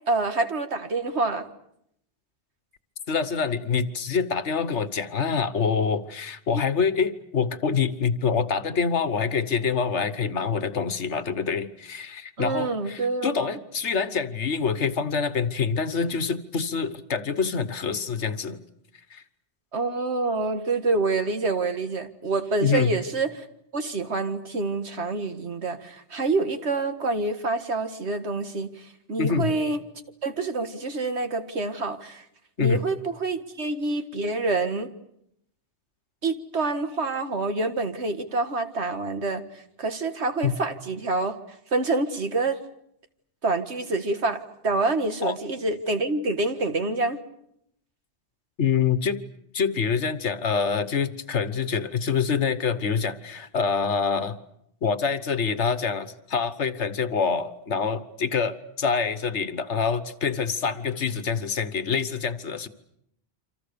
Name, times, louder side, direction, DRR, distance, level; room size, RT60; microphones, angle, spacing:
voice 1, 0.1-1.5 6.5-6.6 12.4-13.6 19.7-23.5 23.7-28.7 29.1-29.8 30.2-32.2 32.6-34.9 36.2-39.4 39.8-41.4 41.7-42.6 43.4-47.2, right 3 dB, 75° right, 8 dB, 2.0 m, -27 dB
voice 2, 3.1-18.6 19.1-19.2 22.6-22.9 29.2-29.5 32.6-32.8 40.4-40.6 45.2-45.3 48.6-49.2 49.5-54.4 54.8-62.7, left 6 dB, 85° left, 13 dB, 1.6 m, -26 dB
28.5 x 26.0 x 6.9 m, 0.76 s
omnidirectional pair, 1.1 m